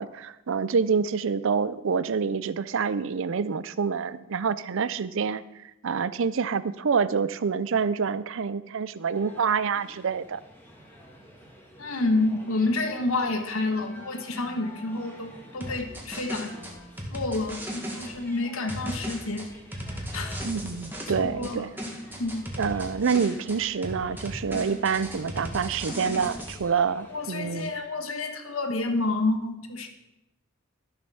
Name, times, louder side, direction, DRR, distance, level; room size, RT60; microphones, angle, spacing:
voice 1, 0.0-10.4 20.4-21.7 22.6-27.7, right 5 dB, 65° right, 16 dB, 0.5 m, -27 dB
sound 1, 9.1-27.8, equal, 10° left, 2.2 m, -50 dB
voice 2, 11.8-16.5 17.1-19.5 20.1-20.4 21.2-21.7 22.2-22.5 27.1-29.9, left 2 dB, 85° left, 5 dB, 1.4 m, -29 dB
sound 2, 15.6-18.1 18.7-21.5 21.8-23.6 23.8-26.6, equal, 10° right, 2.1 m, -36 dB
13.5 x 6.9 x 5.6 m, 0.92 s
head